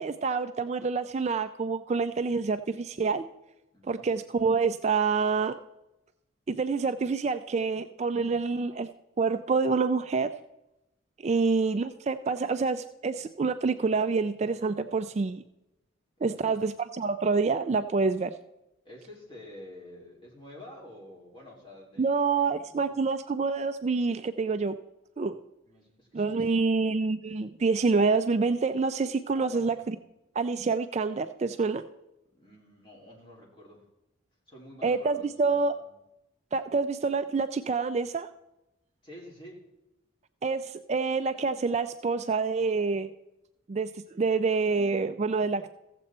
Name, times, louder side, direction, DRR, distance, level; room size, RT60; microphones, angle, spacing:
voice 1, 0.0-3.2 3.9-5.6 6.5-8.9 9.2-10.3 11.2-15.4 16.2-18.3 22.0-24.7 25.2-25.4 26.1-30.0 30.4-31.8 34.8-35.7 36.5-38.3 40.4-43.1 43.7-43.9 44.1-45.7, right 4 dB, 35° right, 10 dB, 0.3 m, -27 dB
voice 2, 3.7-4.1 16.2-16.6 18.8-23.0 25.6-26.7 29.3-29.8 32.3-33.8 34.5-35.9 39.0-39.6, left 1 dB, 25° left, -3 dB, 2.9 m, -49 dB
15.0 x 7.6 x 4.3 m, 0.92 s
head